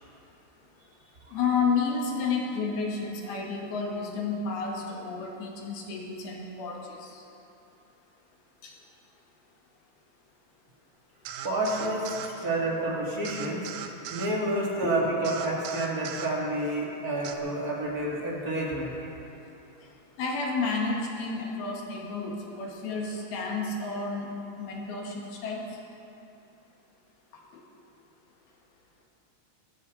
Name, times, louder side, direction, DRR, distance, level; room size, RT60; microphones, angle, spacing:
voice 1, 1.3-7.2 8.6-8.8 14.8-14.9 20.2-24.3 24.6-25.7, left 4 dB, 70° left, -1 dB, 3.6 m, -31 dB
sound 1, 11.3-12.3 13.2-14.3 15.2-16.3 17.2-17.4, right 8 dB, 80° right, 1.9 m, -39 dB
voice 2, 11.4-12.1 12.4-13.6 14.1-18.9, right 1 dB, 30° right, -3 dB, 1.7 m, -29 dB
19.5 x 14.0 x 4.2 m, 2.8 s
omnidirectional pair, 4.8 m